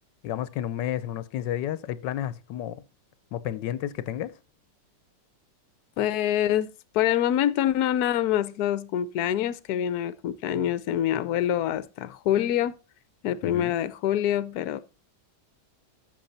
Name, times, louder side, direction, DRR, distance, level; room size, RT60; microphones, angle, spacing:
voice 1, 0.2-2.8 3.3-4.3 13.4-13.8, left 11 dB, 90° left, 1.4 m, -31 dB
voice 2, 6.0-12.7 13.2-14.8, left 11 dB, 70° left, 1.2 m, -25 dB
13.0 x 7.2 x 4.1 m
omnidirectional pair, 1.9 m